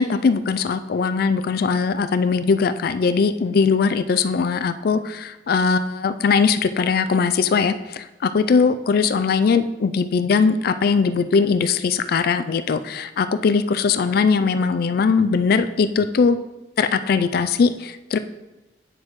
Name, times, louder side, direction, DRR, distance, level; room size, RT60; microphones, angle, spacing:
voice 1, 0.0-16.4 16.8-18.2, left 5 dB, 60° left, 11 dB, 0.4 m, -20 dB
9.2 x 6.4 x 3.1 m, 1.0 s
head